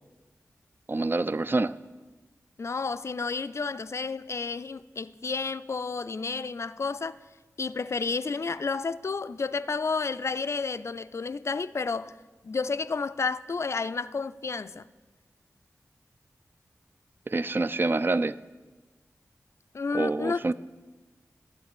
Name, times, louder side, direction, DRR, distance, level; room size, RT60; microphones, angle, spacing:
voice 1, 0.9-1.7 17.3-18.3 19.9-20.5, right 2 dB, 40° right, 0.3 m, -26 dB
voice 2, 2.6-7.2 7.6-12.1 12.4-14.8 19.7-20.5, left 4 dB, 55° left, 0.3 m, -31 dB
11.0 x 5.1 x 8.4 m
cardioid pair, 50°, 6 cm